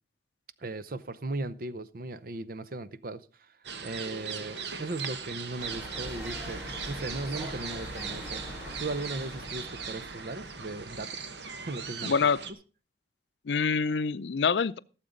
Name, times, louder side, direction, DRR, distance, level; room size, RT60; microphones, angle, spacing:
voice 1, 0.6-3.5 3.8-8.4 8.8-11.3 11.6-12.1, right 2 dB, 55° right, 0.7 m, -37 dB
sound 1, 3.6-12.5, right 6 dB, 75° right, 1.1 m, -39 dB
sound 2, 5.6-11.0, equal, 15° right, 3.3 m, -43 dB
voice 2, 12.0-12.4 13.5-14.8, left 5 dB, 75° left, 0.5 m, -26 dB
16.0 x 7.4 x 5.1 m
head